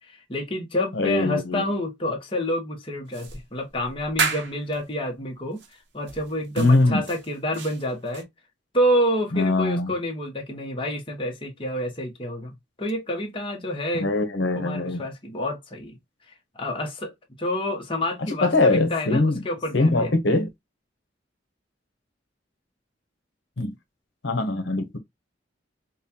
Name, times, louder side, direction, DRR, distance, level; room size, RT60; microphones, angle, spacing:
voice 1, 0.1-5.6 5.9-8.3 8.7-14.1 14.6-16.0 16.5-17.1 17.4-20.1, left 1 dB, 30° left, 1.2 m, -28 dB
voice 2, 0.9-1.6 6.6-7.0 9.3-9.9 14.0-15.0 18.4-19.4 19.7-20.5 23.6-23.7 24.2-25.0, left 2 dB, 75° left, 1.0 m, -22 dB
sound 1, 3.1-4.8 5.6-5.7 6.1-8.2, right 5 dB, 65° right, 1.0 m, -32 dB
5.4 x 2.4 x 2.7 m
head